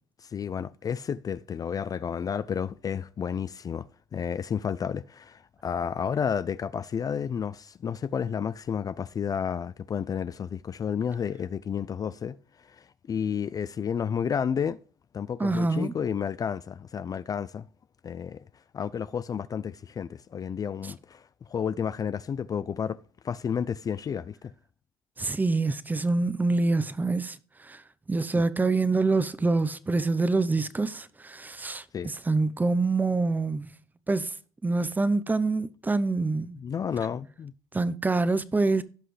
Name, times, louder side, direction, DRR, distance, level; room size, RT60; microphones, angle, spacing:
voice 1, 0.2-14.8 15.1-17.7 18.0-18.4 18.7-23.0 23.2-24.5 31.9-32.1 36.6-37.5, left 7 dB, 35° left, 0.5 m, -31 dB
voice 2, 15.4-16.0 25.2-27.8 28.1-33.7 34.1-34.3 34.6-36.6 37.7-38.8, right 3 dB, 15° right, 0.8 m, -26 dB
16.5 x 5.8 x 3.3 m
supercardioid pair, 90°, 11 cm